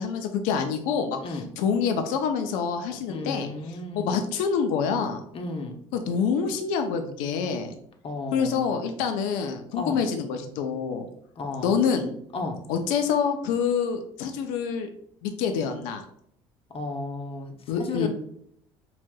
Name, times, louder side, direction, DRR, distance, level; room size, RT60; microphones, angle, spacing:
voice 1, 0.0-3.5 3.9-5.2 5.9-7.7 8.3-11.1 11.6-12.1 12.7-14.9 15.2-16.0 17.7-18.1, left 6 dB, 75° left, 6 dB, 0.5 m, -26 dB
voice 2, 3.1-4.1 5.3-5.8 8.0-8.8 9.7-10.0 11.4-11.8 12.3-12.6 16.7-18.1, left 2 dB, 40° left, 3 dB, 0.8 m, -33 dB
4.8 x 2.5 x 2.2 m, 0.68 s
hypercardioid pair, 70°, 14 cm